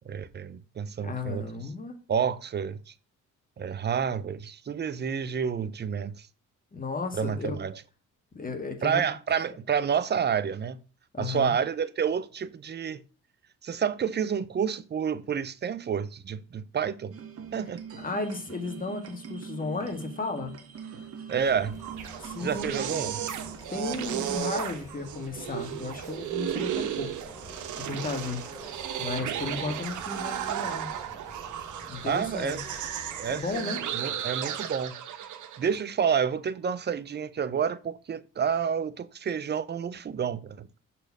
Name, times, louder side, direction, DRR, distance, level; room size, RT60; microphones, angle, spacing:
voice 1, 0.1-1.5 2.1-2.9 3.6-6.3 7.1-7.8 8.8-10.8 11.2-13.0 13.6-17.2 17.5-17.8 21.3-21.8 22.4-23.2 32.0-32.6 33.2-35.0 35.6-40.7, right 7 dB, 35° right, 0.6 m, -29 dB
voice 2, 1.0-2.0 6.7-7.6 8.3-9.0 11.1-11.5 18.0-20.5 22.2-23.1 23.7-27.1 27.8-28.5 29.0-30.9 31.9-32.6 33.3-33.8, left 3 dB, 30° left, 1.7 m, -34 dB
sound 1, 17.1-24.4, right 7 dB, 50° right, 1.4 m, -42 dB
sound 2, 21.3-33.6, right 1 dB, 10° right, 3.6 m, -48 dB
sound 3, 21.7-35.8, right 10 dB, 75° right, 1.1 m, -34 dB
6.4 x 4.4 x 6.0 m
cardioid pair, 90°, 30 cm